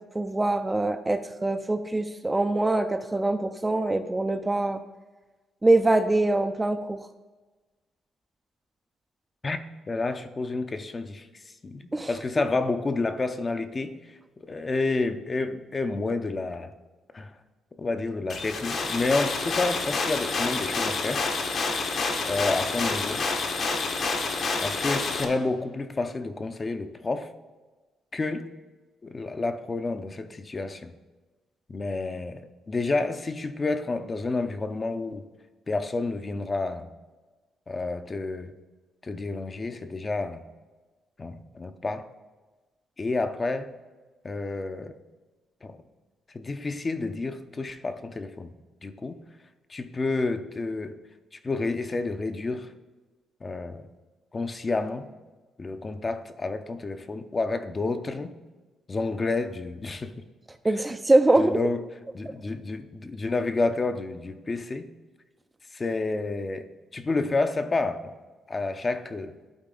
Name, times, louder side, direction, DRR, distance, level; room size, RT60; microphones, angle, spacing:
voice 1, 0.1-4.8 5.6-7.1 11.9-12.1 60.6-61.6, right 2 dB, 15° right, 9 dB, 0.4 m, -23 dB
voice 2, 9.9-11.3 11.6-14.0 14.4-16.7 17.1-17.4 17.8-21.2 22.3-23.3 24.6-27.3 28.1-28.5 29.0-30.9 31.7-35.3 35.7-36.9 37.7-38.5 39.0-40.4 41.2-42.1 43.0-43.7 44.2-45.0 45.6-45.8 46.3-48.5 48.8-49.2 49.7-51.0 51.4-52.7 53.4-53.8 54.3-55.1 55.6-58.3 58.9-60.2 61.4-61.8 62.1-64.9 65.7-68.1 68.5-69.3, left 3 dB, 30° left, 9 dB, 0.6 m, -29 dB
sound 1, 18.3-25.2, left 3 dB, 60° left, 1.1 m, -28 dB
11.5 x 4.0 x 3.8 m, 1.2 s
cardioid pair, 90°, 0 cm